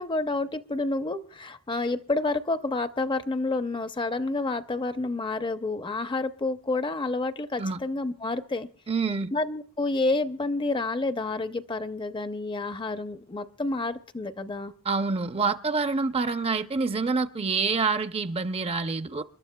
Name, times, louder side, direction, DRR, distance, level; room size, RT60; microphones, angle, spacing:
voice 1, 0.0-8.7 9.3-14.7, left 2 dB, 20° left, 0.6 m, -29 dB
voice 2, 8.9-9.3 14.8-19.2, right 4 dB, 25° right, 0.5 m, -27 dB
29.0 x 12.0 x 2.2 m
head